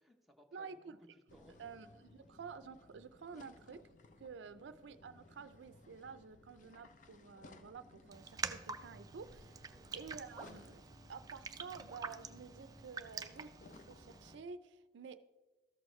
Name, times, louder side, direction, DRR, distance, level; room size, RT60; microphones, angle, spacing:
voice 1, 0.0-1.7 2.3-2.4 3.3-3.5 4.4-4.7 9.7-9.9, equal, ahead, 1 dB, 0.7 m, -64 dB
voice 2, 0.5-1.0 1.6-3.8 4.2-9.7 9.9-15.2, right 5 dB, 85° right, 12 dB, 0.4 m, -51 dB
sound 1, 1.3-14.4, left 2 dB, 45° left, 0.5 m, -60 dB
Raindrop, 8.1-14.3, right 5 dB, 20° right, 0.3 m, -47 dB
13.5 x 6.4 x 3.1 m, 1.2 s
head